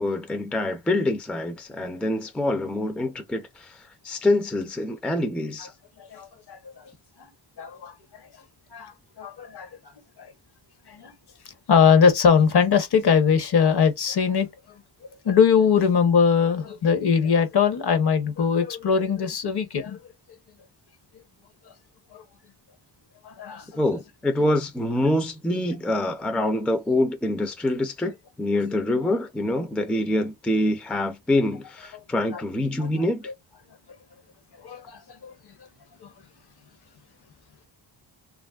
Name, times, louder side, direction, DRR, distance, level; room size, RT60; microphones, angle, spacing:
voice 1, 0.0-5.7 23.7-33.2, left 1 dB, 5° left, 0.4 m, -25 dB
voice 2, 6.1-6.8 7.6-8.2 8.7-8.9 9.2-9.7 10.2-10.3 10.9-11.1 11.7-14.5 15.2-20.0 22.1-22.2 23.2-23.7 32.3-32.4 34.6-35.3 36.0-36.1, left 6 dB, 55° left, 0.8 m, -21 dB
2.9 x 2.5 x 2.3 m
wide cardioid pair, 115°, 46 cm